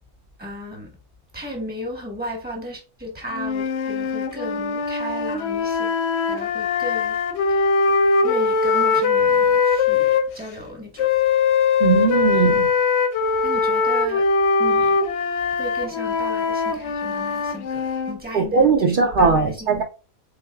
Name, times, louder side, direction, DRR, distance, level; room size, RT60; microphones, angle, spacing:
voice 1, 0.4-0.9 1.3-6.0 6.3-7.7 8.2-11.1 13.4-14.3 14.6-15.0 15.5-19.8, equal, 10° right, 1.0 m, -35 dB
sound 1, 3.3-10.3 11.0-18.2, left 5 dB, 65° left, 0.7 m, -21 dB
voice 2, 11.8-12.7 18.3-19.8, right 5 dB, 75° right, 0.4 m, -19 dB
4.2 x 3.4 x 2.2 m
omnidirectional pair, 1.4 m